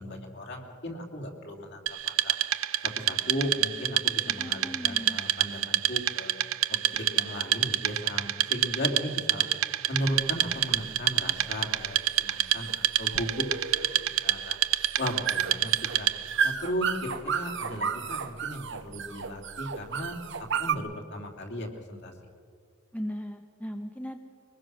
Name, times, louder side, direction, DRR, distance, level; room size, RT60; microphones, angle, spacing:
voice 1, 0.0-1.8 2.0-2.4 2.8-6.3 6.7-9.4 9.9-12.7 13.0-13.4 14.2-14.6 15.0-15.7 16.0-16.1 16.4-20.1 20.5-22.1, equal, 55° left, 2 dB, 2.9 m, -36 dB
Wood, 1.9-16.4, right 13 dB, 85° right, 0.7 m, -28 dB
voice 2, 4.2-5.2 22.9-24.2, equal, 5° left, 5 dB, 0.9 m, -37 dB
sound 1, 10.1-20.7, right 7 dB, 60° right, 1.0 m, -33 dB
23.5 x 20.5 x 6.3 m, 2.2 s
head